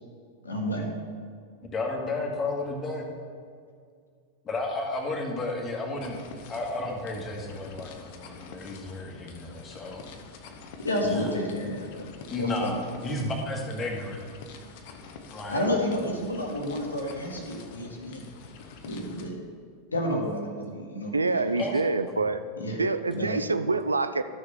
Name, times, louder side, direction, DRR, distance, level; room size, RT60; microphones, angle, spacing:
voice 1, 0.4-0.9 10.8-12.0 12.4-12.7 15.5-18.2 18.8-19.4 19.9-21.6 22.6-22.8 23.1-23.4, left 1 dB, 75° left, 1 dB, 1.5 m, -30 dB
voice 2, 1.7-3.1 4.4-10.0 11.0-11.3 12.3-14.2 15.3-15.6 21.6-22.2, left 2 dB, 25° left, 0 dB, 1.7 m, -32 dB
sound 1, 6.0-19.3, left 4 dB, 50° left, 0.9 m, -47 dB
voice 3, 21.1-22.4 22.8-24.2, right 3 dB, 80° right, 11 dB, 0.4 m, -26 dB
12.5 x 6.5 x 3.6 m, 2.2 s
figure-of-eight pair, 90°, 0 cm